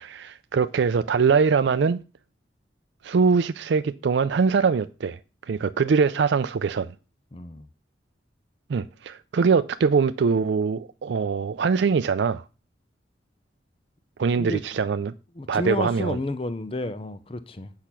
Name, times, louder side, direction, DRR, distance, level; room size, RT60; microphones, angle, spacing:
voice 1, 0.0-2.0 3.0-5.2 5.5-6.9 8.7-12.4 14.2-15.1 15.5-16.2, right 5 dB, 70° right, 0.4 m, -22 dB
voice 2, 7.3-7.7 14.4-14.6 15.3-17.7, left 2 dB, 30° left, 0.6 m, -31 dB
8.6 x 5.7 x 6.0 m
head